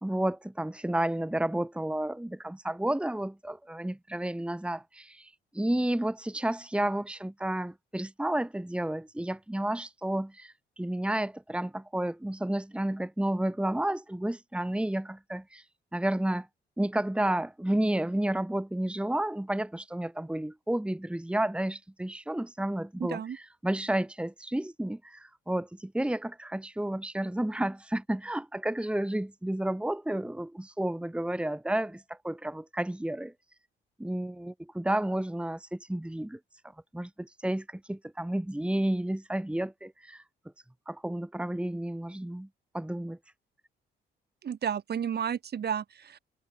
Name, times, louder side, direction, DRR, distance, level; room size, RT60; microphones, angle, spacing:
voice 1, 0.0-15.6 15.9-16.5 16.8-33.3 34.0-36.4 36.9-40.2 40.9-42.5 42.7-43.2, right 1 dB, 5° right, 1.9 m, -31 dB
voice 2, 23.0-23.4 44.4-46.2, right 8 dB, 55° right, 4.9 m, -32 dB
open air
cardioid pair, 90°, 20 cm